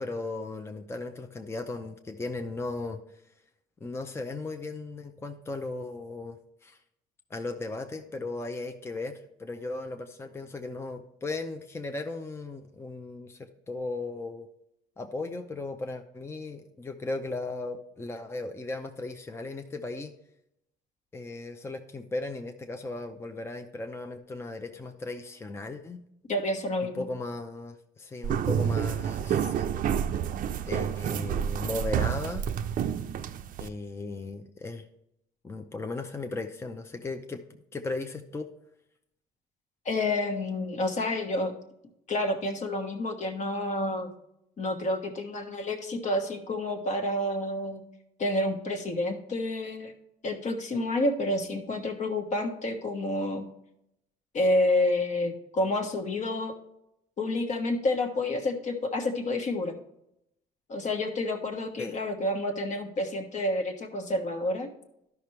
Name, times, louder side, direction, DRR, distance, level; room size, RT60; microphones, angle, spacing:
voice 1, 0.0-3.0 3.8-6.8 7.3-14.5 15.0-20.1 21.1-26.0 26.9-29.7 30.7-32.5 33.6-34.9 35.4-38.5 61.8-62.0, left 2 dB, 15° left, 6 dB, 0.6 m, -36 dB
voice 2, 26.3-27.0 39.8-41.5 42.1-44.1 44.6-47.8 48.2-49.9 50.2-53.5 54.3-56.5 57.2-59.7 60.7-64.7, left 1 dB, 45° left, 5 dB, 1.3 m, -29 dB
sound 1, 28.2-33.7, right 8 dB, 55° right, 0.5 m, -29 dB
12.0 x 5.9 x 3.2 m, 0.80 s
cardioid pair, 110°, 17 cm